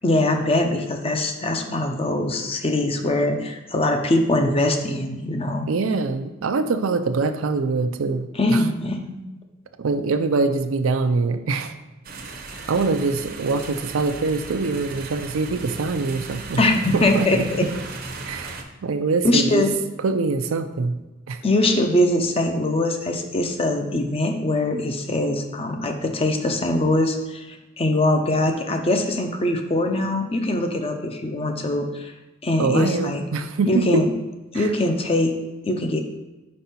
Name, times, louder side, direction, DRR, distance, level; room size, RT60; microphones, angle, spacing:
voice 1, 0.0-5.7 8.3-9.2 16.6-17.7 19.2-19.7 21.4-32.1 32.4-33.2 33.7-34.1 34.5-35.3 35.6-36.0, left 1 dB, 30° left, 5 dB, 0.6 m, -22 dB
voice 2, 5.7-8.6 9.8-11.7 12.7-16.6 16.9-17.4 18.3-19.7 20.0-21.0 21.3-21.4 32.6-34.0 34.5-34.7, right 4 dB, 90° right, 9 dB, 0.5 m, -24 dB
sound 1, 12.0-18.6, right 3 dB, 50° right, 0.7 m, -36 dB
5.3 x 4.5 x 4.2 m, 1.1 s
head